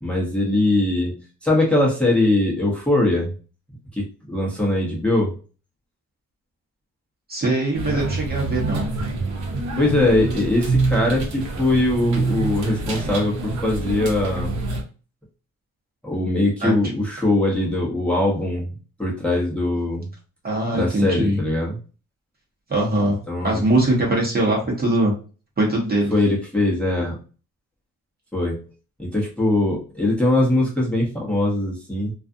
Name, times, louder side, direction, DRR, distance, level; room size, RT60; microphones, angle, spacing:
voice 1, 0.0-1.1 1.4-3.3 3.9-5.4 9.8-14.5 16.0-18.7 19.0-20.1 20.7-21.8 23.1-23.6 26.1-27.2 28.3-28.6 29.0-32.1, left 1 dB, 5° left, -4 dB, 0.9 m, -21 dB
voice 2, 7.3-8.8 16.6-16.7 20.4-21.4 22.7-25.1 25.6-26.1, right 1 dB, 30° right, -2 dB, 1.0 m, -21 dB
sound 1, 7.7-14.8, right 3 dB, 65° right, 0.8 m, -26 dB
2.4 x 2.4 x 2.6 m, 0.36 s
cardioid pair, 90°, 30 cm